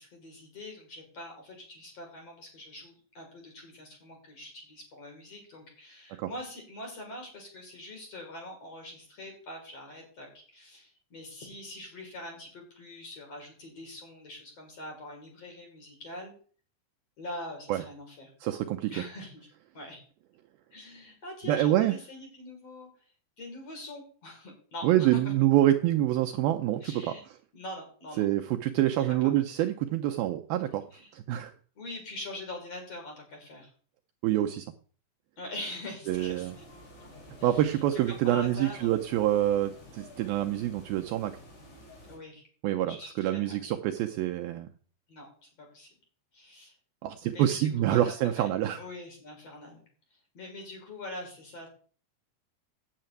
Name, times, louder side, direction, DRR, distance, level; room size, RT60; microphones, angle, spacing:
voice 1, 0.0-16.3 17.2-18.3 18.9-19.5 19.7-20.0 20.7-22.9 23.4-25.2 26.8-27.2 27.5-28.3 28.7-29.3 30.9-31.1 31.8-33.7 35.4-36.6 37.4-37.8 38.1-38.9 42.1-42.5 42.9-43.8 45.1-45.9 46.3-46.7 47.3-48.5 48.7-49.8 50.3-51.7, left 1 dB, 35° left, 2 dB, 5.1 m, -43 dB
voice 2, 18.4-18.9 21.5-21.9 24.8-27.1 28.2-30.8 31.1-31.5 34.2-34.7 36.1-36.5 37.4-41.4 42.6-44.7 47.0-48.8, right 13 dB, 90° right, 6 dB, 2.1 m, -26 dB
Quebrada La Vieja - Cuerpo de agua con voces, 36.0-42.2, equal, 75° left, 7.1 m, -50 dB
10.5 x 6.6 x 9.0 m, 0.43 s
omnidirectional pair, 5.1 m